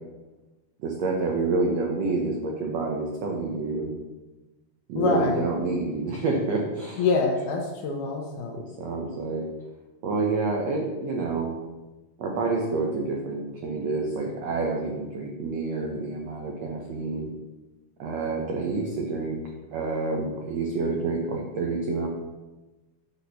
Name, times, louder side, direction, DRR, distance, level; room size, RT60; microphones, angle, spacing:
voice 1, 0.8-3.9 4.9-7.0 8.5-9.5 10.0-11.5 12.2-17.3 18.0-19.4 19.7-22.1, right 3 dB, 90° right, 0 dB, 1.4 m, -28 dB
voice 2, 5.0-5.5 7.0-8.6, left 4 dB, 70° left, 1 dB, 2.1 m, -25 dB
9.7 x 4.3 x 6.8 m, 1.1 s
omnidirectional pair, 4.4 m